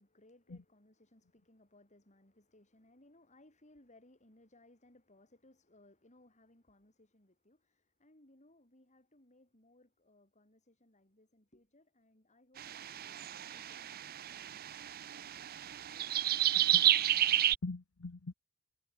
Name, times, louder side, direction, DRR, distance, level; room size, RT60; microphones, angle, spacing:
voice 1, 0.0-14.4, left 1 dB, 35° left, 5.6 m, -65 dB
sound 1, 12.6-17.6, right 12 dB, 45° right, 0.5 m, -31 dB
voice 2, 16.5-18.3, left 3 dB, 85° left, 0.9 m, -44 dB
head